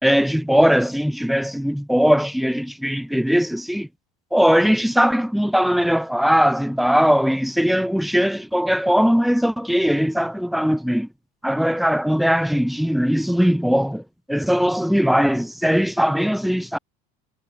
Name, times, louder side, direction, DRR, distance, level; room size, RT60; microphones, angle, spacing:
voice 1, 0.0-3.9 4.3-11.1 11.4-14.0 14.3-16.8, equal, ahead, 4.5 m, -19 dB
supercardioid pair, 125°, 19 cm